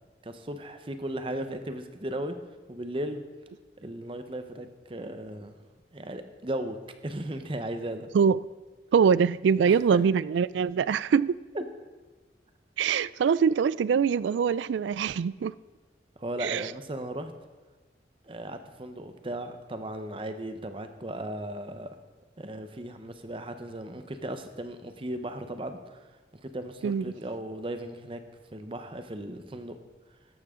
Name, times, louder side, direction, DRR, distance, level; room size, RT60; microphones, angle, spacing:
voice 1, 0.2-2.4 2.7-3.2 3.8-5.6 5.9-6.8 7.0-8.1 9.7-10.0 11.5-11.7 16.2-17.3 18.2-21.9 22.4-26.1 26.3-28.2 28.5-29.8, right 1 dB, 30° right, 0.9 m, -36 dB
voice 2, 8.9-11.4 12.8-15.5 16.4-16.6 26.8-27.1, right 6 dB, 85° right, 0.3 m, -23 dB
13.5 x 11.5 x 3.7 m
head